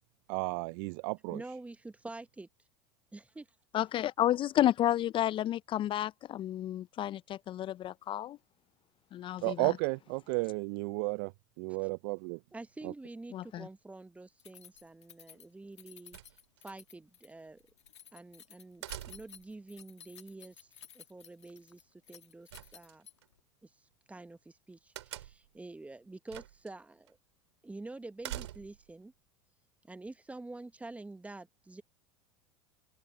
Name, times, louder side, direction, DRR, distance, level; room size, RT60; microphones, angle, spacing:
voice 1, 0.3-1.4 9.4-11.3 11.6-12.4 12.8-12.9, right 31 dB, 60° right, 0.5 m, -33 dB
voice 2, 1.3-2.5 3.1-3.5 12.5-16.2 16.6-17.6 18.1-20.7 20.9-23.1 23.6-23.7 24.1-27.2 27.6-29.1 29.9-31.8, right 2 dB, 10° right, 1.2 m, -47 dB
voice 3, 3.7-8.4 9.1-9.7 13.3-13.7, left 12 dB, 35° left, 0.5 m, -31 dB
Keys jangling, 14.4-23.4, left 9 dB, 85° left, 1.8 m, -55 dB
sound 1, 16.1-16.8 18.8-19.5 22.5-23.3 25.0-25.6 26.3-26.7 27.1-27.2 28.2-28.9, right 13 dB, 75° right, 3.2 m, -44 dB
open air
hypercardioid pair, 85°, 14 cm